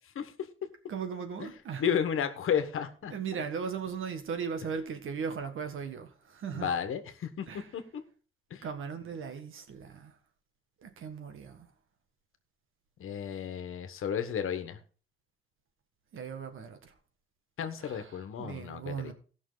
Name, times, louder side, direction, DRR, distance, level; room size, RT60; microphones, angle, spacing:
voice 1, 0.9-1.8 3.1-6.7 7.5-7.7 8.6-10.2 10.8-11.7 16.1-16.9 17.8-19.1, right 6 dB, 75° right, 1.7 m, -38 dB
voice 2, 1.8-3.1 6.5-7.5 7.7-7.8 8.5-8.6 13.0-14.8 17.6-19.1, left 8 dB, 80° left, 1.4 m, -32 dB
17.5 x 6.1 x 4.0 m
wide cardioid pair, 180°, 21 cm